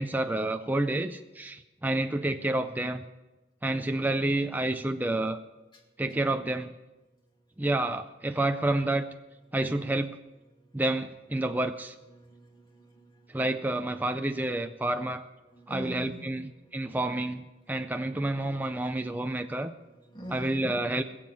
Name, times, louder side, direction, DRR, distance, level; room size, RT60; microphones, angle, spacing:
voice 1, 0.0-3.1 3.6-5.4 6.0-6.7 7.6-9.1 9.5-10.2 10.7-12.0 13.3-15.3 15.7-19.7 20.3-21.0, right 1 dB, 10° right, 7 dB, 0.4 m, -29 dB
voice 2, 12.1-13.2 15.5-16.3 19.8-20.8, right 1 dB, 25° left, 1 dB, 2.3 m, -43 dB
20.5 x 7.5 x 7.4 m, 1.1 s
head